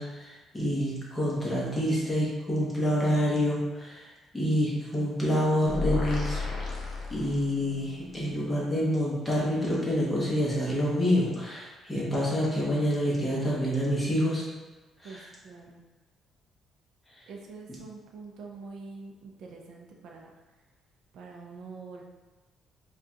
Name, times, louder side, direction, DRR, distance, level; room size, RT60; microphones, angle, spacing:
voice 1, 0.0-6.4 7.1-14.5 15.0-15.3, equal, 10° left, -6 dB, 1.1 m, -27 dB
sound 1, 5.7-7.8, left 3 dB, 45° left, 0.8 m, -32 dB
voice 2, 15.0-15.8 17.3-20.3 21.1-22.0, right 4 dB, 70° right, 0 dB, 0.5 m, -45 dB
4.8 x 2.4 x 2.8 m, 1.2 s
cardioid pair, 145°, 0 cm